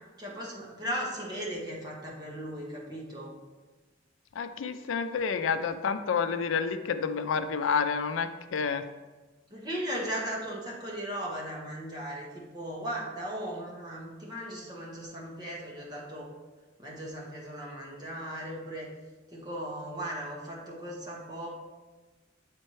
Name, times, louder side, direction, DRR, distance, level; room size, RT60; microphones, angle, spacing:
voice 1, 0.2-3.4 9.5-16.3 16.8-18.9 19.3-21.5, equal, 20° right, -4 dB, 1.3 m, -37 dB
voice 2, 4.4-8.8, left 6 dB, 85° left, 10 dB, 0.4 m, -29 dB
7.4 x 4.3 x 3.1 m, 1.2 s
head